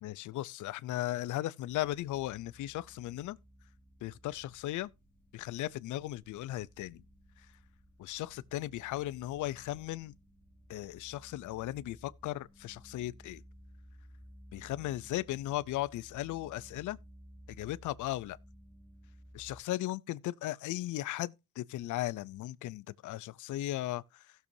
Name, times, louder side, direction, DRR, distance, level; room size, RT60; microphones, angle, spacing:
voice 1, 0.0-3.4 4.0-4.9 5.3-7.0 8.0-10.1 10.7-13.4 14.5-17.0 17.6-18.4 19.3-24.3, left 15 dB, 75° left, 0.6 m, -37 dB
sound 1, 1.7-19.6, equal, 5° left, 0.9 m, -57 dB
16.5 x 6.9 x 2.7 m
cardioid pair, 90°, 30 cm